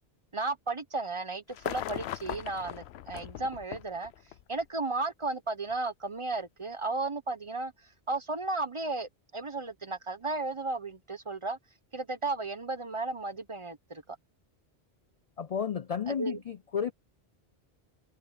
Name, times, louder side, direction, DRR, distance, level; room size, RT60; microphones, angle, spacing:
voice 1, 0.3-4.1 4.5-11.6 11.9-14.2 16.1-16.4, right 3 dB, 30° right, 0.9 m, -34 dB
sound 1, 1.5-4.6 5.7-5.8, left 12 dB, 85° left, 0.9 m, -39 dB
voice 2, 15.4-16.9, left 7 dB, 50° left, 0.5 m, -32 dB
omnidirectional pair, 1.1 m